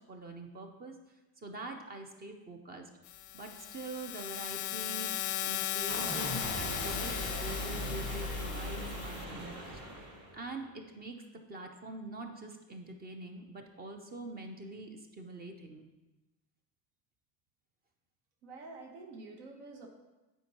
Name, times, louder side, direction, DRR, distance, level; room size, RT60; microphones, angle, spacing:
voice 1, 0.1-1.0 1.4-2.9 3.3-5.1 5.4-11.2 11.5-15.9, right 2 dB, 25° right, 5 dB, 0.4 m, -44 dB
sound 1, 3.1-9.2, left 12 dB, 45° left, 0.4 m, -37 dB
sound 2, 5.9-10.5, equal, 40° right, 2.2 m, -38 dB
voice 2, 18.4-19.9, right 3 dB, 80° right, 1 dB, 1.1 m, -48 dB
9.1 x 4.4 x 2.9 m, 1.1 s
cardioid pair, 140°, 43 cm